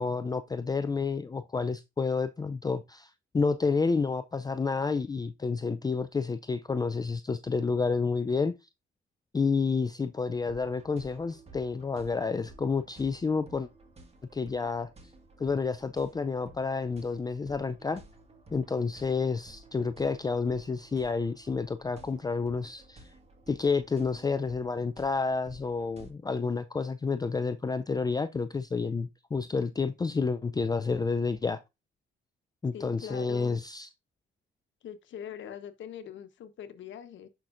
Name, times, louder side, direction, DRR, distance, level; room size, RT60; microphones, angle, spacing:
voice 1, 0.0-8.5 9.3-13.7 14.3-14.9 15.4-18.0 18.5-23.0 23.5-31.6 32.6-33.9, left 4 dB, 20° left, 0.4 m, -30 dB
sound 1, 10.3-26.1, right 2 dB, 30° right, 1.8 m, -54 dB
voice 2, 32.7-33.6 34.8-37.3, left 9 dB, 70° left, 1.1 m, -42 dB
10.5 x 5.8 x 2.6 m
cardioid pair, 90°, 20 cm